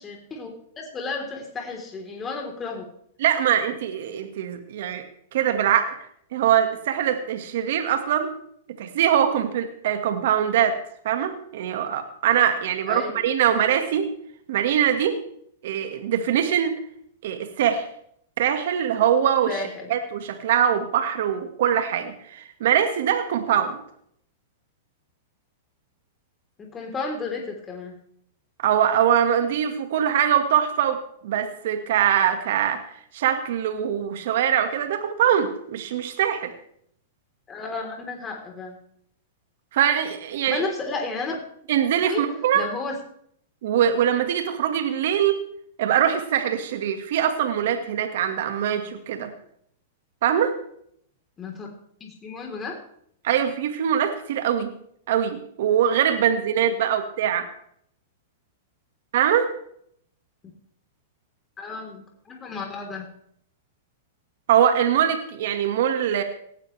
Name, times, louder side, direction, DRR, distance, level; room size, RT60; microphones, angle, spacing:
voice 1, 0.0-2.9 12.9-13.2 19.5-19.9 26.6-28.0 37.5-38.8 40.5-41.4 42.0-42.3 42.5-43.0 51.4-51.7 52.0-52.8 61.6-63.1, left 3 dB, 20° left, 1 dB, 3.9 m, -33 dB
voice 2, 3.2-5.0 5.3-5.9 6.3-8.3 8.8-10.8 11.0-14.1 14.5-15.2 15.6-16.7 17.2-17.8 18.4-19.5 19.9-23.8 28.6-32.8 33.1-36.5 39.7-40.6 41.7-42.6 43.6-45.4 45.8-49.3 50.2-50.5 53.2-54.7 55.1-57.5 59.1-59.5 64.5-66.2, right 9 dB, 65° right, 6 dB, 1.9 m, -22 dB
19.0 x 15.5 x 3.4 m, 0.68 s
hypercardioid pair, 115°, 0 cm